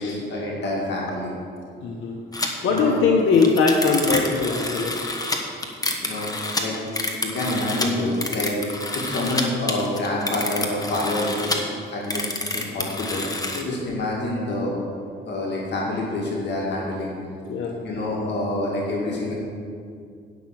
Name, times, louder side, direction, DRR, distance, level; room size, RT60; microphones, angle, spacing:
voice 1, 0.0-1.3 2.6-2.9 6.0-6.3 6.6-6.8 7.2-12.2 12.5-14.7 15.3-17.1 17.8-19.3, left 1 dB, 60° left, -3 dB, 2.2 m, -27 dB
voice 2, 1.8-2.2 2.6-4.9 13.5-13.8 17.5-17.8, left 4 dB, 75° left, -1 dB, 1.0 m, -21 dB
sound 1, 2.3-2.5 2.8-2.9 3.2-9.4 9.7-11.6 12.0-13.6, left 2 dB, 20° left, 1.3 m, -28 dB
9.4 x 5.9 x 7.6 m, 2.3 s
cardioid pair, 90°, 20 cm